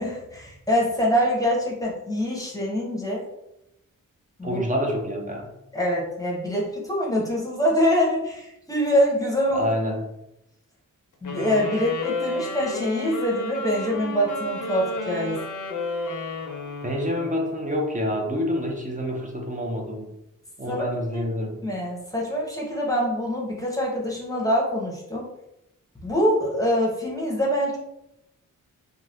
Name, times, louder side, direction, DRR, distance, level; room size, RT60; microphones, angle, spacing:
voice 1, 0.0-3.2 4.4-4.6 5.7-9.7 11.2-15.4 20.7-20.9 21.1-21.2 21.6-25.3 26.0-27.8, equal, 10° left, -4 dB, 0.9 m, -24 dB
voice 2, 4.4-5.5 9.5-10.0 16.8-20.1 20.6-21.6, equal, 25° right, 1 dB, 0.6 m, -27 dB
sound 1, 11.2-17.6, left 2 dB, 65° left, 0.6 m, -32 dB
2.6 x 2.3 x 3.3 m, 0.85 s
wide cardioid pair, 85°, 33 cm